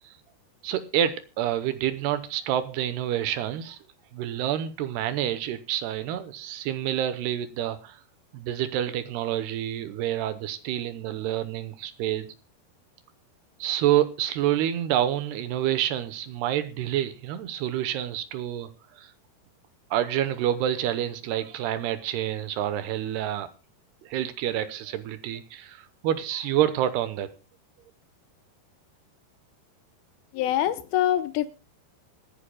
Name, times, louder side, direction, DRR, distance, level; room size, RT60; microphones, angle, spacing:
voice 1, 0.6-3.8 4.1-8.0 8.3-12.3 13.6-18.7 19.0-19.1 19.9-23.5 24.1-27.3, right 11 dB, 80° right, 12 dB, 2.9 m, -28 dB
voice 2, 30.3-31.5, left 12 dB, 75° left, 12 dB, 2.6 m, -24 dB
25.0 x 10.5 x 2.3 m, 0.30 s
omnidirectional pair, 4.8 m